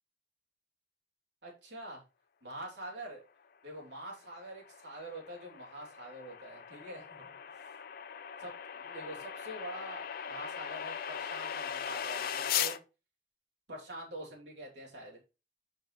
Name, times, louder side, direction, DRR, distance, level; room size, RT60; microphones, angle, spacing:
voice 1, 1.4-2.0 2.4-3.2 3.6-7.7 8.4-12.8 13.7-15.2, right 1 dB, 70° right, -2 dB, 3.2 m, -45 dB
sound 1, 4.1-12.8, left 9 dB, 55° left, 0.5 m, -39 dB
5.6 x 5.2 x 4.1 m, 0.30 s
head